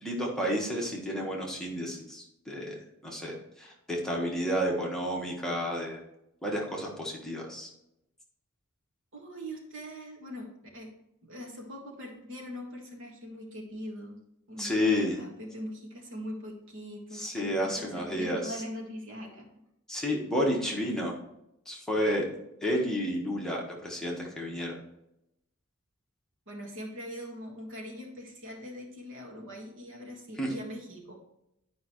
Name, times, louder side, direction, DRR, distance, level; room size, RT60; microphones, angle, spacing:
voice 1, 0.0-6.0 6.4-7.7 14.6-15.2 17.1-18.6 19.9-21.1 21.7-22.3 22.6-24.7 30.4-30.5, equal, 5° left, -3 dB, 1.3 m, -31 dB
voice 2, 9.1-10.9 11.2-14.2 14.5-19.4 26.5-31.1, equal, 60° right, 0 dB, 1.7 m, -42 dB
10.5 x 5.4 x 3.1 m, 0.83 s
head